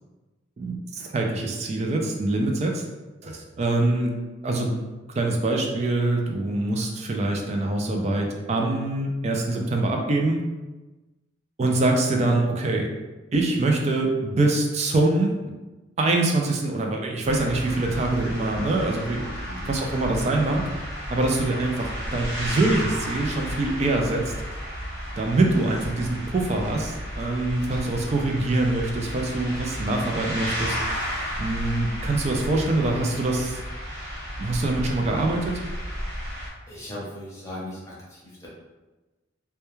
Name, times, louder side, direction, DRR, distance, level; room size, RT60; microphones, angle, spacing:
voice 1, 0.6-2.8 3.2-4.1 4.4-4.7 5.2-10.4 11.6-12.9 13.3-15.3 16.0-19.3 19.6-20.6 21.1-24.3 25.2-30.8 31.4-33.6 34.4-35.6, right 2 dB, 35° right, 1 dB, 0.3 m, -24 dB
sound 1, 17.2-36.5, equal, 65° right, 0.9 m, -33 dB
voice 2, 19.4-19.8 36.7-38.5, left 1 dB, 15° left, -7 dB, 0.7 m, -38 dB
2.2 x 2.1 x 3.0 m, 1.2 s
head